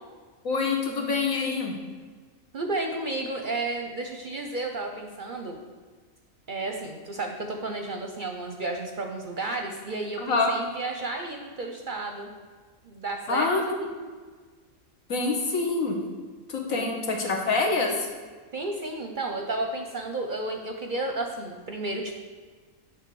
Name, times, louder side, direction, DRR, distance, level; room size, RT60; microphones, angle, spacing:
voice 1, 0.4-1.8 10.2-10.5 13.3-14.0 15.1-16.0 16.5-18.1, left 3 dB, 80° left, 1 dB, 1.6 m, -26 dB
voice 2, 2.5-5.6 6.5-12.3 12.8-13.8 16.7-16.9 18.5-22.2, right 2 dB, 50° right, 3 dB, 0.6 m, -32 dB
8.6 x 3.6 x 6.8 m, 1.5 s
omnidirectional pair, 1.4 m